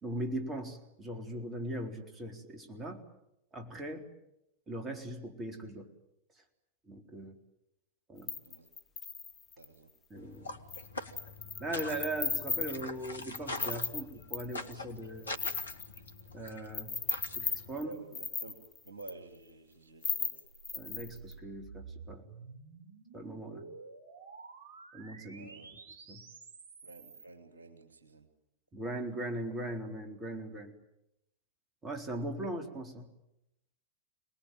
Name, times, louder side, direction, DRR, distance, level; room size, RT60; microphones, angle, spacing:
voice 1, 0.0-3.0 3.5-4.1 4.7-5.9 6.9-7.4 8.1-8.3 10.1-10.5 11.6-15.3 16.3-16.9 17.3-18.0 20.7-22.2 23.1-23.7 24.9-25.5 26.1-26.2 28.7-30.7 31.8-33.0, right 1 dB, 20° right, 4 dB, 4.0 m, -39 dB
sound 1, 8.3-9.6 10.7-10.9 11.2-14.7 15.0-16.5 16.7-19.1 20.0-21.3, left 6 dB, 20° left, 2.1 m, -36 dB
voice 2, 9.6-9.9 17.9-20.3 25.3-25.7 26.8-28.3, right 3 dB, 75° right, 5 dB, 2.8 m, -51 dB
sound 2, 10.2-17.9, left 2 dB, 75° left, 1.8 m, -44 dB
sound 3, 20.4-27.3, right 5 dB, 60° right, 5.5 m, -51 dB
27.0 x 20.0 x 9.3 m, 0.84 s
figure-of-eight pair, 90°, 0 cm